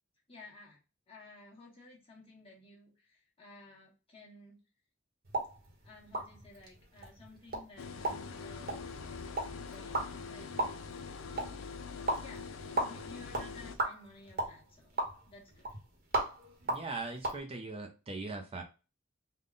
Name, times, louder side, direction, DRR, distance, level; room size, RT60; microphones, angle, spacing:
voice 1, 0.3-0.8 1.1-4.6 5.8-8.9 9.5-10.6 12.2-12.5 12.8-15.7, left 2 dB, 30° left, -4 dB, 1.3 m, -55 dB
sound 1, 5.2-17.4, right 2 dB, 50° right, 1.0 m, -38 dB
sound 2, 7.8-13.8, left 5 dB, 80° left, 0.5 m, -44 dB
voice 2, 16.7-18.6, right 3 dB, 30° right, 3 dB, 0.5 m, -40 dB
3.6 x 2.2 x 3.7 m, 0.31 s
head